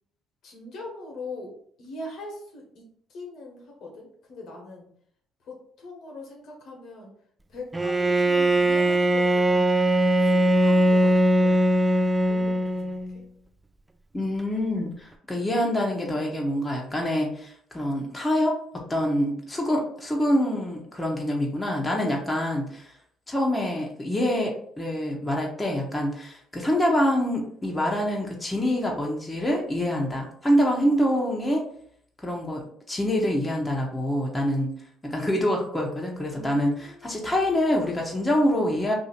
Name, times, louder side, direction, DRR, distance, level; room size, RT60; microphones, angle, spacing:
voice 1, 0.4-2.8 3.1-4.9 5.4-7.1 7.5-13.2 36.3-37.4, left 2 dB, 60° left, 0 dB, 1.2 m, -42 dB
Bowed string instrument, 7.7-13.2, right 1 dB, 15° right, 0.3 m, -21 dB
voice 2, 14.1-18.6 18.9-22.9 23.3-31.7 32.2-34.7 35.0-38.9, equal, 15° left, -1 dB, 1.0 m, -25 dB
2.7 x 2.7 x 4.3 m, 0.63 s
supercardioid pair, 65°, 0 cm